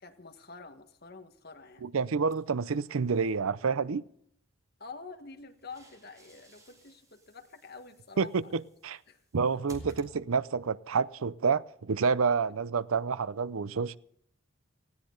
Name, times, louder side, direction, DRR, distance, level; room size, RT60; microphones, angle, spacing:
voice 1, 0.0-2.0 4.8-8.3 9.1-9.2 9.5-9.6, left 4 dB, 45° left, 1.6 m, -48 dB
voice 2, 1.8-4.0 8.2-9.0 9.3-14.0, right 5 dB, 75° right, 0.5 m, -29 dB
sound 1, 2.3-3.4 5.3-10.7, right 1 dB, 15° right, 2.9 m, -54 dB
19.0 x 16.0 x 3.9 m
head